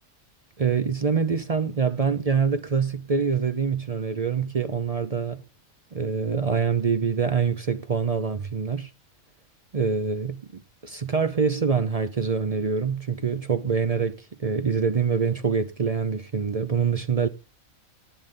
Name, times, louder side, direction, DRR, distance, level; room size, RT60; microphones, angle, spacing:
voice 1, 0.6-5.4 5.9-8.9 9.7-17.3, right 5 dB, 45° right, 0.5 m, -25 dB
17.5 x 7.8 x 3.8 m
omnidirectional pair, 1.4 m